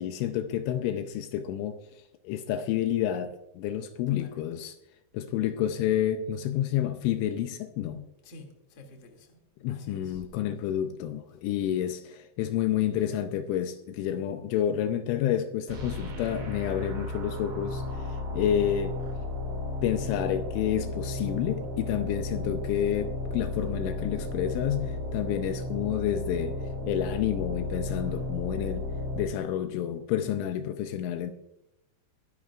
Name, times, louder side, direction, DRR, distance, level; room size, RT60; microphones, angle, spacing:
voice 1, 0.0-1.8 2.2-4.8 5.1-8.0 9.6-19.0 19.8-26.6 26.9-28.9 29.1-31.3, left 10 dB, 80° left, 2.9 m, -29 dB
voice 2, 4.1-4.5 8.2-9.4 9.7-10.2, left 3 dB, 35° left, 2.0 m, -49 dB
sound 1, 15.7-29.2, left 2 dB, 85° right, 8.0 m, -34 dB
23.0 x 11.0 x 2.4 m
omnidirectional pair, 5.7 m